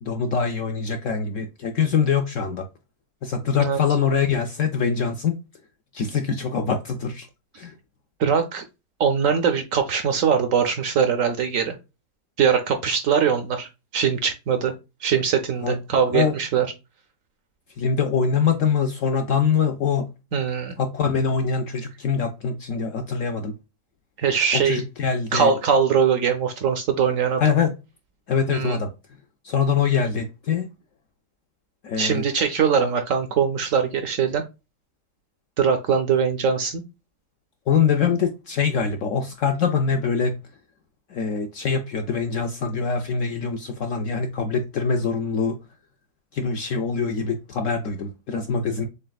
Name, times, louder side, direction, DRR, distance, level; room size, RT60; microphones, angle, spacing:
voice 1, 0.0-2.7 3.2-5.4 5.9-7.3 7.6-7.7 15.6-15.8 16.1-16.3 17.8-20.1 20.8-23.5 24.5-25.5 27.4-27.7 28.3-28.9 29.4-30.7 31.8-32.2 37.7-40.4 41.1-45.6 46.3-48.9, left 6 dB, 70° left, 0.7 m, -23 dB
voice 2, 8.2-8.6 9.0-11.8 12.4-14.7 15.0-16.7 20.3-20.7 24.2-24.8 25.3-27.4 28.5-28.8 32.0-34.4 35.6-36.8, right 7 dB, 65° right, 0.8 m, -21 dB
6.6 x 2.4 x 2.2 m
omnidirectional pair, 1.8 m